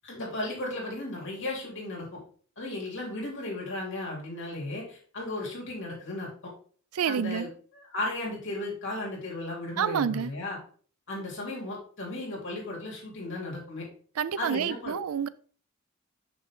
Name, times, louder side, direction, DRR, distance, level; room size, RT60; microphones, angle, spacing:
voice 1, 0.0-2.2 2.6-6.5 7.1-7.5 7.7-10.6 11.1-13.8 14.4-15.0, left 2 dB, 60° left, 3.0 m, -35 dB
voice 2, 6.9-7.5 9.8-10.3 14.2-15.3, right 7 dB, 85° right, 0.4 m, -28 dB
6.2 x 5.6 x 3.7 m
head